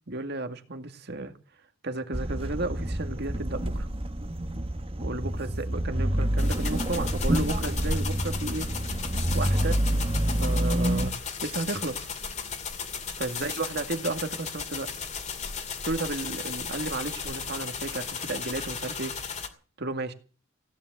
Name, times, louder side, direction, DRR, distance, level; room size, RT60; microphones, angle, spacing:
voice 1, 0.1-1.3 1.8-3.9 5.0-8.7 9.3-9.8 10.4-11.1 11.4-12.1 13.1-14.9 15.8-19.1 19.8-20.1, right 2 dB, 55° right, 2.1 m, -33 dB
sound 1, 2.1-11.1, right 1 dB, 30° right, 1.3 m, -28 dB
sound 2, 6.4-19.5, left 4 dB, 35° left, 2.4 m, -35 dB
17.0 x 10.5 x 8.0 m
head